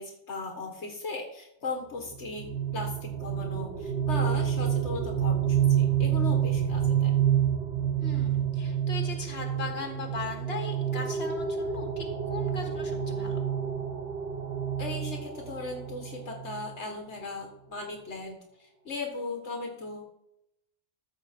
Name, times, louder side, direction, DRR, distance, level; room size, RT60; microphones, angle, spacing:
voice 1, 0.0-7.2 14.8-20.0, left 3 dB, 75° left, 2 dB, 1.8 m, -37 dB
sound 1, 2.0-16.7, right 9 dB, 75° right, 1.8 m, -28 dB
voice 2, 8.0-13.4, left 3 dB, 60° left, 3 dB, 1.9 m, -38 dB
14.0 x 6.5 x 4.4 m, 0.78 s
omnidirectional pair, 1.2 m